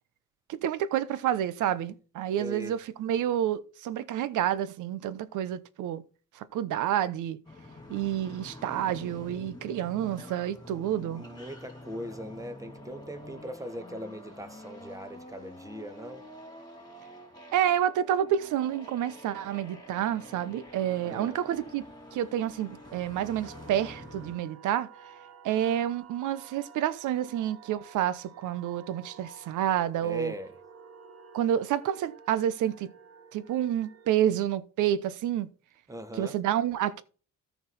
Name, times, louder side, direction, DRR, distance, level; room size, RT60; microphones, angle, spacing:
voice 1, 0.5-6.0 6.4-7.4 7.9-11.2 17.5-21.8 22.1-24.9 25.4-30.3 31.3-32.9 33.3-35.5 36.2-37.0, right 10 dB, 85° right, 0.8 m, -29 dB
voice 2, 2.4-2.8 11.1-16.2 21.0-21.4 30.0-30.5 35.9-36.4, equal, 10° right, 1.4 m, -40 dB
sound 1, 7.4-24.3, left 1 dB, 15° left, 3.4 m, -47 dB
sound 2, 23.2-34.1, right 6 dB, 50° right, 1.3 m, -51 dB
13.5 x 4.7 x 4.2 m
cardioid pair, 90°, 30 cm